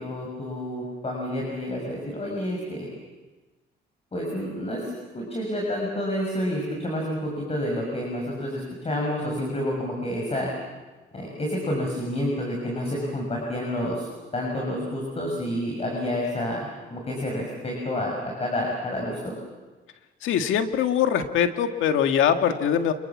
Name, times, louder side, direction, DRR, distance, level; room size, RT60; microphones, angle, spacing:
voice 1, 0.0-2.9 4.1-4.8 5.1-10.5 11.1-14.1 14.3-19.3, left 1 dB, 30° left, -1 dB, 6.6 m, -29 dB
voice 2, 20.2-22.9, left 8 dB, 85° left, 7 dB, 1.9 m, -22 dB
28.0 x 22.5 x 7.4 m, 1.2 s
cardioid pair, 90°, 20 cm